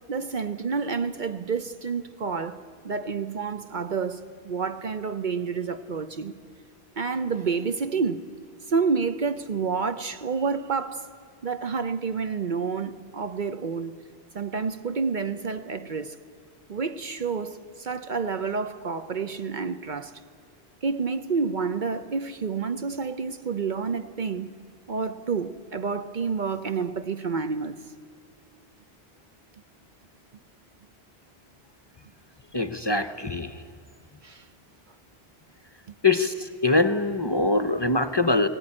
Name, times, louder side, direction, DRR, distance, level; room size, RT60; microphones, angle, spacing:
voice 1, 0.1-6.4 7.0-8.3 8.7-11.1 11.4-13.9 14.3-16.2 16.7-20.1 20.8-24.6 24.9-27.8 34.2-34.4 35.9-36.0, right 5 dB, 50° right, 0.8 m, -29 dB
voice 2, 32.5-33.6 36.0-38.5, left 3 dB, 30° left, 0.7 m, -23 dB
20.0 x 17.5 x 9.8 m
omnidirectional pair, 1.1 m